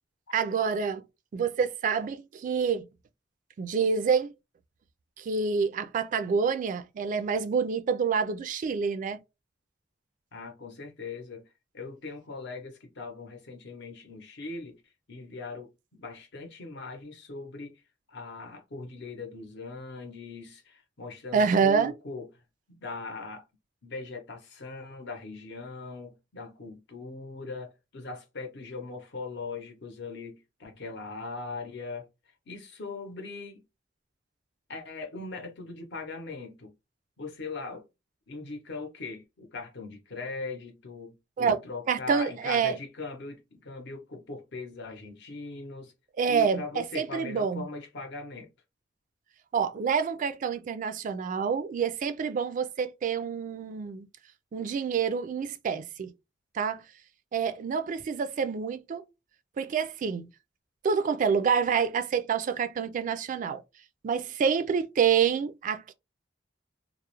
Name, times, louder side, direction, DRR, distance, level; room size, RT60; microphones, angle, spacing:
voice 1, 0.3-1.0 1.3-2.9 3.6-4.3 5.2-9.2 21.3-21.9 41.4-41.6 41.9-42.8 46.2-47.7 49.5-54.1 54.5-56.1 56.5-56.8 57.3-59.0 59.6-60.3 60.8-63.6 64.0-65.9, right 6 dB, 45° right, 0.3 m, -27 dB
voice 2, 10.3-11.4 11.7-14.8 15.1-17.8 18.1-22.3 22.8-23.4 23.8-32.1 32.5-33.6 34.7-36.7 37.2-37.8 38.3-45.9 46.3-48.5, left 3 dB, 65° left, 0.7 m, -40 dB
2.3 x 2.0 x 2.9 m
head